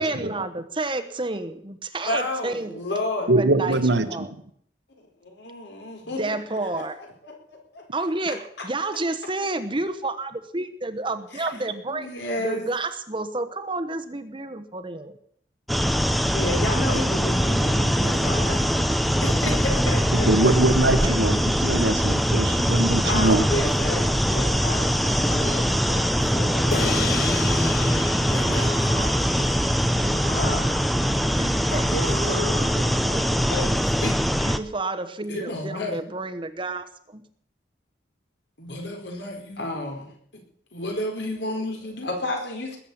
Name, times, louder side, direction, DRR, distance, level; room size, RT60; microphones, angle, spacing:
voice 1, 0.0-2.8 3.2-4.3 6.0-7.0 7.9-12.1 12.4-15.2 20.3-20.6 21.0-21.7 31.3-31.8 34.3-37.2, right 2 dB, 30° right, 10 dB, 1.1 m, -30 dB
voice 2, 2.0-3.3 5.2-6.3 6.7-6.8 7.2-7.8 8.6-8.7 11.3-11.5 11.9-12.7 16.2-20.5 23.0-26.9 27.2-27.7 28.3-29.5 30.3-30.7 31.0-31.1 31.7-34.2 35.3-36.0 38.6-40.0 40.3-40.4 40.7-42.8, left 1 dB, 75° left, 2 dB, 4.7 m, -32 dB
voice 3, 3.3-4.1 20.3-21.3 21.6-23.4, right 2 dB, 70° right, 10 dB, 1.4 m, -22 dB
sound 1, 15.7-34.6, equal, ahead, 0.7 m, -22 dB
sound 2, 26.7-31.3, left 6 dB, 55° left, 0.9 m, -34 dB
sound 3, 28.1-29.5 29.9-31.1 31.8-33.1, equal, 90° right, 3.5 m, -36 dB
20.0 x 7.7 x 8.7 m, 0.63 s
head